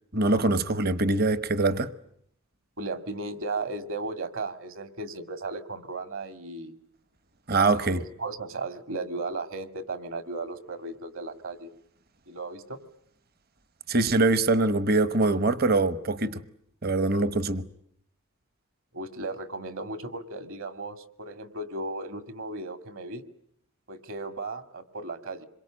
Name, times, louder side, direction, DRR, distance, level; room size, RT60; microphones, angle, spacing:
voice 1, 0.1-1.9 7.5-8.0 13.9-16.4 16.8-17.7, right 2 dB, 45° right, 1.0 m, -23 dB
voice 2, 2.8-6.7 7.5-11.7 12.3-12.8 18.9-23.2 23.9-25.5, right 3 dB, 65° right, 2.1 m, -35 dB
26.5 x 23.0 x 8.8 m
head